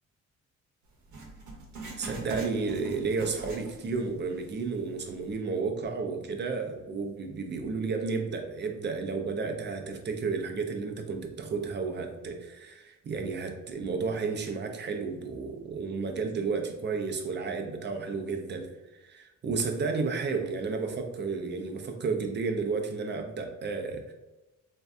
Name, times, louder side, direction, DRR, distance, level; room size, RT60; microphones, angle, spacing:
Writing, 1.1-4.1 4.4-4.5 5.2-5.3, right 2 dB, 75° right, 0.9 m, -42 dB
voice 1, 2.0-24.1, right 4 dB, 35° right, 4 dB, 0.5 m, -32 dB
3.2 x 2.6 x 2.3 m, 1.1 s
cardioid pair, 90°, 30 cm